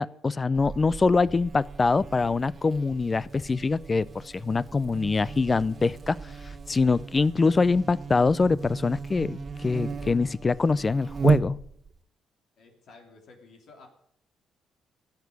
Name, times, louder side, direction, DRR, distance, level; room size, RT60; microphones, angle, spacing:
voice 1, 0.0-6.2 6.7-11.6, left 4 dB, 30° left, 21 dB, 0.5 m, -24 dB
Buzz, 0.6-12.0, right 5 dB, 40° right, 1.3 m, -34 dB
voice 2, 12.6-13.9, left 3 dB, 70° left, 2 dB, 3.1 m, -52 dB
13.0 x 8.2 x 9.4 m, 0.71 s
cardioid pair, 90°, 0 cm